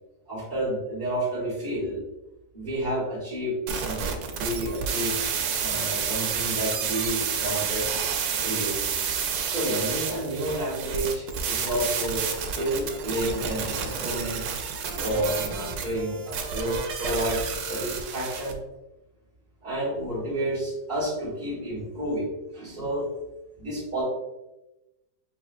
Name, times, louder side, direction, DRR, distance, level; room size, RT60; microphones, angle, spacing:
voice 1, 0.3-2.0 2.5-5.2 5.6-7.8 8.4-9.0 9.5-14.4 15.0-18.6 19.6-23.0 23.6-24.0, right 1 dB, 25° right, -11 dB, 1.6 m, -30 dB
sound 1, 3.7-18.5, right 6 dB, 90° right, 1.3 m, -30 dB
6.4 x 2.8 x 2.4 m, 0.97 s
omnidirectional pair, 1.9 m